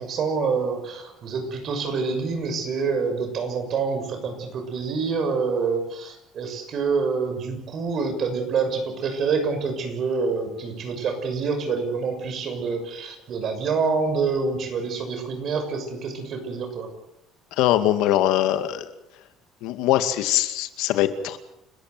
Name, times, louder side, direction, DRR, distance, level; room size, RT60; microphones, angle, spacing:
voice 1, 0.0-16.9, right 5 dB, 45° right, 6 dB, 6.5 m, -27 dB
voice 2, 17.6-18.9 19.6-21.4, left 13 dB, 80° left, 9 dB, 2.2 m, -22 dB
30.0 x 14.5 x 8.0 m, 0.82 s
cardioid pair, 135°, 0 cm